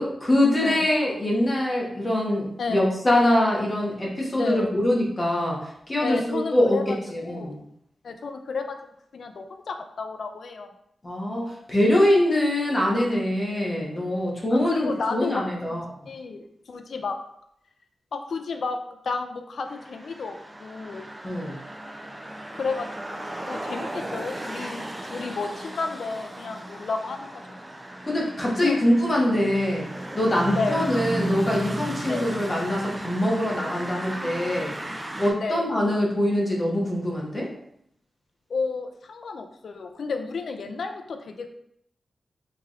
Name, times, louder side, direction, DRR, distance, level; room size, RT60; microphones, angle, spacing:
voice 1, 0.0-6.8 7.1-7.6 11.0-15.9 21.2-21.6 28.0-29.9 30.1-34.7 35.2-37.5, left 1 dB, 30° left, -3 dB, 1.1 m, -23 dB
voice 2, 2.6-2.9 4.3-4.7 6.0-7.6 8.0-8.8 9.1-10.7 14.5-15.8 16.1-17.2 18.1-18.8 19.0-21.0 22.5-27.4 28.6-28.8 30.6-30.8 32.1-32.3 35.4-35.6 38.5-41.5, left 4 dB, 75° left, 6 dB, 0.4 m, -31 dB
sound 1, 19.7-35.3, right 1 dB, 20° right, 0.5 m, -35 dB
4.6 x 2.9 x 2.4 m, 0.74 s
cardioid pair, 70°, 0 cm